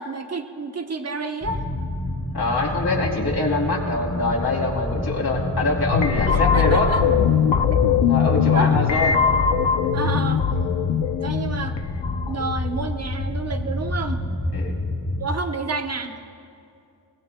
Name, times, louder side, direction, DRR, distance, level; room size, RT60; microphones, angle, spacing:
voice 1, 0.0-1.7 6.3-7.0 7.7-7.8 8.2-8.9 9.9-10.4 11.2-11.8 12.3-14.2 15.2-16.2, right 3 dB, 35° right, 6 dB, 1.0 m, -29 dB
sound 1, 1.4-15.3, left 1 dB, 15° left, 1.6 m, -29 dB
voice 2, 2.3-6.9 8.1-9.2 10.0-10.1 14.5-14.8, left 3 dB, 60° left, -2 dB, 3.0 m, -24 dB
sound 2, 5.9-12.8, left 7 dB, 80° left, 0.8 m, -21 dB
24.0 x 19.5 x 2.3 m, 2.5 s
wide cardioid pair, 105°, 42 cm